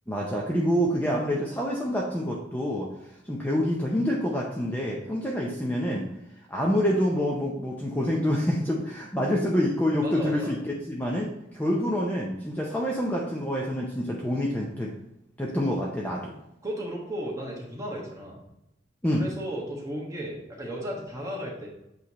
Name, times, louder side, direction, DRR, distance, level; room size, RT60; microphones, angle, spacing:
voice 1, 0.1-2.9 3.3-6.1 6.5-14.9 15.4-16.4 19.0-19.2, equal, 10° left, -2 dB, 0.6 m, -27 dB
voice 2, 10.0-10.5 16.6-18.4 19.2-21.7, equal, 15° right, -4 dB, 1.4 m, -34 dB
8.0 x 3.3 x 4.1 m, 0.86 s
head